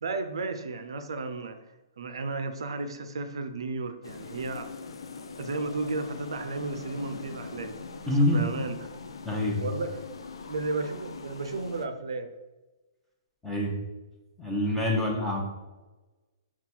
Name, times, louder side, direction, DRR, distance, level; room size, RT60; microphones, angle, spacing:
voice 1, 0.0-1.6 2.0-4.7 5.4-8.9 9.6-10.0 10.5-12.3, right 3 dB, 85° right, 8 dB, 0.4 m, -33 dB
sound 1, 4.0-11.9, left 4 dB, 85° left, 0.4 m, -42 dB
voice 2, 8.1-8.5 9.2-9.6 13.4-13.7 14.4-15.4, left 1 dB, 5° left, -2 dB, 0.7 m, -25 dB
3.9 x 2.3 x 4.3 m, 1.1 s
hypercardioid pair, 155°, 3 cm